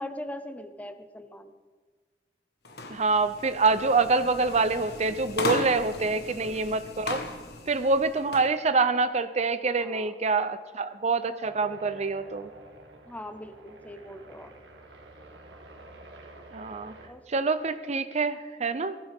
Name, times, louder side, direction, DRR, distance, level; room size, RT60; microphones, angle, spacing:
voice 1, 0.0-1.5 6.1-6.6 9.8-10.1 13.1-14.5 17.1-17.2, left 1 dB, 10° left, 9 dB, 0.7 m, -41 dB
sound 1, 2.6-8.5, left 2 dB, 65° left, 1.4 m, -36 dB
voice 2, 2.9-7.2 7.7-12.5 16.5-16.9 17.3-19.0, right 4 dB, 40° right, 11 dB, 0.6 m, -26 dB
sound 2, 11.4-17.1, right 2 dB, 80° right, 1.9 m, -49 dB
18.5 x 15.5 x 3.6 m, 1.4 s
head